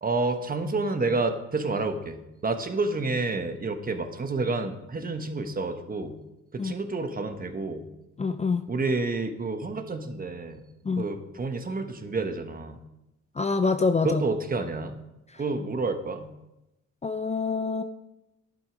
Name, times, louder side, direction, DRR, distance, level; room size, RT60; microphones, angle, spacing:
voice 1, 0.0-6.2 6.5-7.9 8.7-10.6 11.0-12.8 14.0-15.0 15.4-16.3, right 3 dB, 30° right, 7 dB, 1.2 m, -29 dB
voice 2, 8.2-8.6 10.9-11.0 13.4-14.2 17.0-17.8, left 4 dB, 20° left, 9 dB, 0.5 m, -25 dB
10.5 x 7.5 x 5.1 m, 0.92 s
cardioid pair, 90°, 30 cm